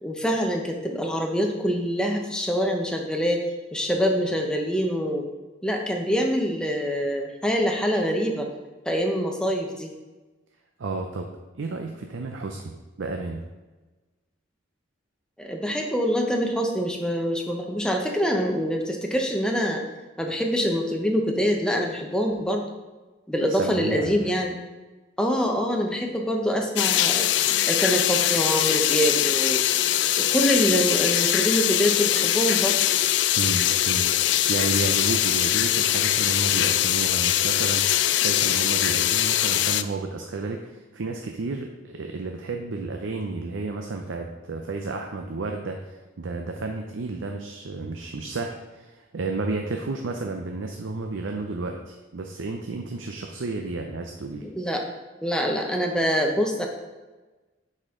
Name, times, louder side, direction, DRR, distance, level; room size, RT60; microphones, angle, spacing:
voice 1, 0.0-3.4 3.7-5.3 5.6-8.5 8.9-9.9 15.4-19.8 20.2-22.6 23.3-24.6 25.2-27.3 27.7-29.6 30.2-32.8 54.4-54.9 55.2-56.7, equal, 5° left, 1 dB, 0.7 m, -25 dB
voice 2, 10.8-11.3 11.6-12.7 13.0-13.4 23.5-24.4 33.4-54.4, right 3 dB, 80° right, 3 dB, 0.6 m, -32 dB
sound 1, 26.8-39.8, left 12 dB, 60° left, 0.3 m, -22 dB
9.8 x 4.3 x 3.7 m, 1.2 s
head